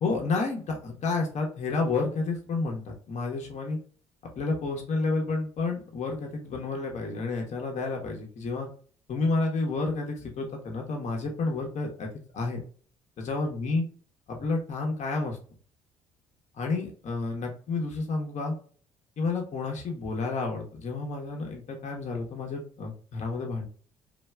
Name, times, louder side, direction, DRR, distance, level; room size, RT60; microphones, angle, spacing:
voice 1, 0.0-3.8 4.2-8.7 9.1-12.1 12.3-12.6 13.2-13.8 14.3-15.4 16.6-18.5 19.2-23.7, left 3 dB, 45° left, 1 dB, 0.9 m, -30 dB
3.1 x 2.5 x 2.2 m, 0.43 s
figure-of-eight pair, 50°, 16 cm